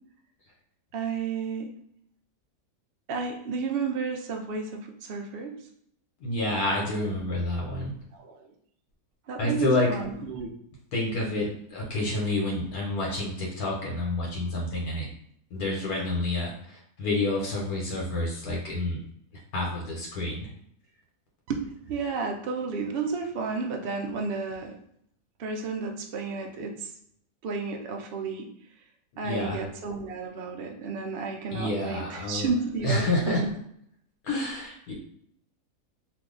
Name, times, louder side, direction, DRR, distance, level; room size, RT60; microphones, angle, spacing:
voice 1, 0.9-1.7 3.1-5.5 8.2-8.4 9.3-10.5 21.5-21.6 21.9-24.8 25.4-26.9 27.4-28.5 29.2-33.5, right 4 dB, 70° right, 2 dB, 0.5 m, -32 dB
voice 2, 6.2-7.9 9.4-9.9 10.9-15.1 15.5-19.0 19.5-20.5 29.2-29.6 31.5-32.5 32.8-33.4 34.2-34.9, left 2 dB, 80° left, -3 dB, 1.3 m, -28 dB
2.6 x 2.3 x 3.6 m, 0.70 s
omnidirectional pair, 1.5 m